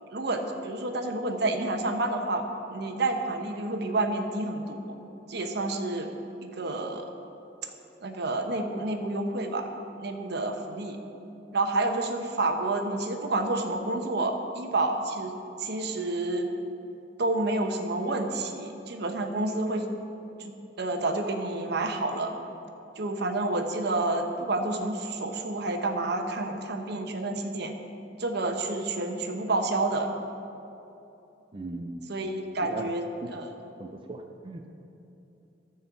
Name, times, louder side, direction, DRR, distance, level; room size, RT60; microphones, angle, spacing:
voice 1, 0.1-2.4 2.7-4.8 5.3-6.1 6.4-7.1 8.0-9.7 10.0-11.0 11.5-16.5 17.2-19.8 20.8-22.3 23.0-27.7 28.2-30.1 32.1-33.5, right 2 dB, 65° right, 4 dB, 0.9 m, -29 dB
voice 2, 31.5-32.0 32.6-32.9 33.8-34.7, right 2 dB, 30° right, 3 dB, 0.5 m, -38 dB
13.5 x 4.5 x 7.0 m, 2.9 s
head